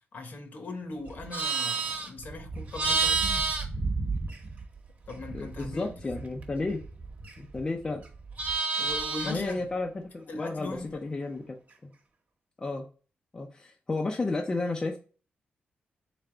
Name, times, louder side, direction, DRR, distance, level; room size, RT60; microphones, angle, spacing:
voice 1, 0.1-3.5 5.1-5.9 8.8-9.7 10.3-11.0, left 3 dB, 50° left, 1.0 m, -39 dB
Livestock farm animals working animals, 1.1-4.8 5.1-7.6 7.9-9.5, right 4 dB, 45° right, 1.0 m, -30 dB
voice 2, 5.2-6.8 7.4-8.0 9.2-11.6 11.8-11.9 12.6-12.9 13.3-15.0, left 3 dB, 20° left, 0.5 m, -32 dB
3.9 x 3.4 x 3.7 m
wide cardioid pair, 150°, 4 cm